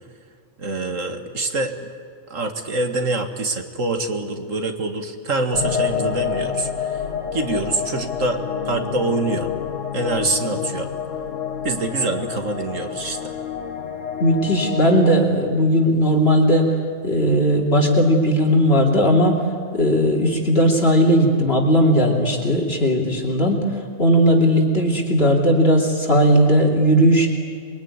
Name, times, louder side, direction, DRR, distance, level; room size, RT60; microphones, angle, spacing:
voice 1, 0.6-1.9 2.3-7.0 7.3-8.4 8.6-9.5 9.9-10.9 11.6-13.3, right 2 dB, 85° right, 5 dB, 2.4 m, -25 dB
sound 1, 5.5-15.2, left 7 dB, 85° left, 1.7 m, -28 dB
voice 2, 14.2-16.6 17.0-19.4 19.7-23.6 24.0-27.3, equal, 50° left, 0 dB, 3.1 m, -17 dB
26.5 x 22.0 x 9.8 m, 2.2 s
omnidirectional pair, 1.3 m